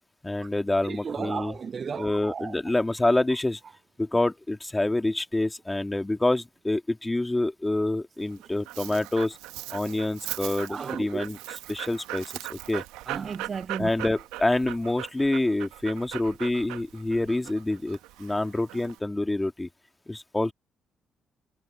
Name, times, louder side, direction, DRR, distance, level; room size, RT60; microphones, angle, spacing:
voice 1, 0.2-1.6 2.0-3.6 4.0-9.4 9.7-12.8 13.8-19.7 20.1-20.5, left 2 dB, 15° left, 2.1 m, -27 dB
voice 2, 0.8-2.5 10.7-11.3 13.1-13.9, right 6 dB, 50° right, 0.3 m, -34 dB
Dog, 8.2-19.0, right 17 dB, 85° right, 1.0 m, -39 dB
hypercardioid pair, 55°, 0 cm